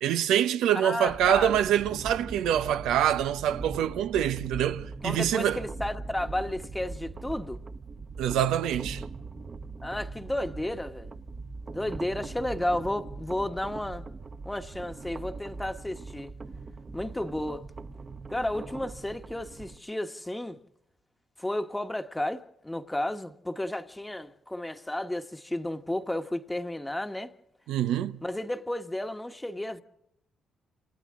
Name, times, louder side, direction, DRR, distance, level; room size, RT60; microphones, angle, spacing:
voice 1, 0.0-5.6 8.2-9.0 27.7-28.2, right 10 dB, 90° right, 0.8 m, -25 dB
voice 2, 0.7-1.5 5.0-7.6 9.8-11.1 11.7-14.0 14.4-16.3 16.9-17.6 18.3-20.6 21.4-27.3 28.2-29.8, left 1 dB, 10° left, 1.3 m, -32 dB
sound 1, 1.1-19.8, right 3 dB, 35° right, 1.1 m, -41 dB
28.0 x 27.5 x 3.7 m
cardioid pair, 90°, 0 cm